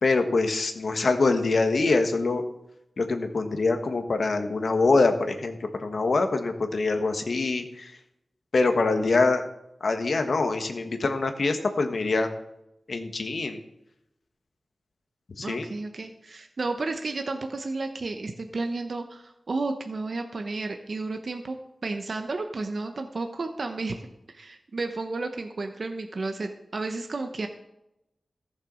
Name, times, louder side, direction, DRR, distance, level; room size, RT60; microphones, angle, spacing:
voice 1, 0.0-2.4 3.0-7.9 8.5-9.4 9.8-12.3 12.9-13.6 15.4-15.6, left 3 dB, 70° left, 6 dB, 1.4 m, -24 dB
voice 2, 15.4-24.0 24.3-27.5, right 3 dB, 60° right, 5 dB, 1.0 m, -32 dB
14.5 x 6.7 x 6.3 m, 0.87 s
cardioid pair, 50°, 0 cm